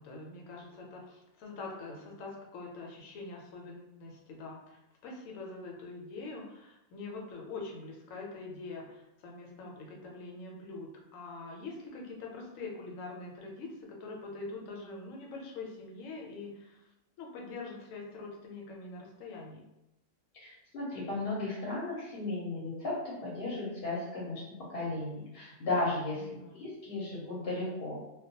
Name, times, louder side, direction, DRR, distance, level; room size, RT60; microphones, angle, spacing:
voice 1, 0.0-16.9 17.2-19.7 26.1-26.5, left 3 dB, 80° left, -1 dB, 1.0 m, -44 dB
voice 2, 20.3-24.4 24.7-28.0, left 2 dB, 55° left, -6 dB, 0.8 m, -35 dB
2.2 x 2.1 x 2.7 m, 0.91 s
omnidirectional pair, 1.4 m